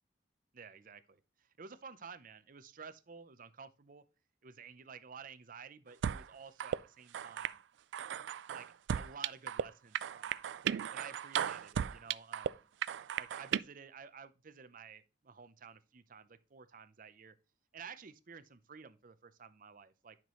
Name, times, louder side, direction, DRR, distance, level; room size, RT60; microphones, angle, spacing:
voice 1, 0.5-4.0 4.4-7.6 8.5-10.4 10.9-12.7 13.2-17.3 17.7-20.2, right 6 dB, 50° right, 0.6 m, -52 dB
sound 1, 6.0-6.2 6.6-6.8 7.1-7.5 7.9-9.6 9.9-12.5 12.8-13.6, right 8 dB, 80° right, 0.3 m, -35 dB
9.5 x 6.0 x 3.1 m
head